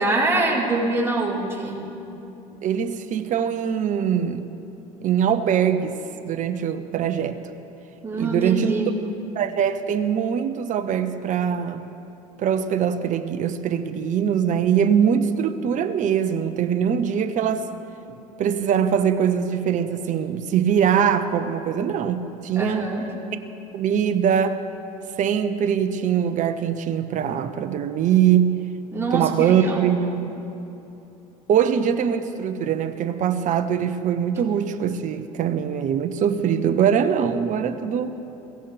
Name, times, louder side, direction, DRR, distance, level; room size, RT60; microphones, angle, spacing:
voice 1, 0.0-1.8 8.0-8.9 22.6-23.1 28.9-30.0, right 2 dB, 15° right, -5 dB, 4.4 m, -24 dB
voice 2, 2.6-4.4 5.0-5.9 6.2-7.4 8.1-8.7 9.3-11.9 12.4-17.7 18.4-22.9 23.7-24.6 25.2-28.6 29.1-30.3 31.5-38.2, right 8 dB, 45° right, 9 dB, 0.9 m, -22 dB
22.0 x 17.0 x 3.4 m, 2.9 s
hypercardioid pair, 75°, 18 cm